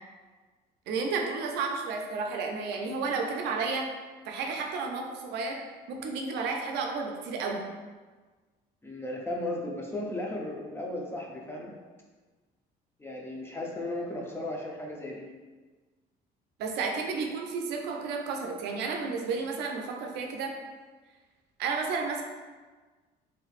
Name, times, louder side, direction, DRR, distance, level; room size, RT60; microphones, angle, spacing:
voice 1, 0.9-3.9 4.3-5.6 5.9-7.7 16.6-20.6 21.6-22.2, right 4 dB, 80° right, 2 dB, 0.5 m, -32 dB
voice 2, 8.8-11.7 13.0-15.2, left 1 dB, 15° left, -2 dB, 0.5 m, -35 dB
3.3 x 3.1 x 2.4 m, 1.4 s
cardioid pair, 110°, 17 cm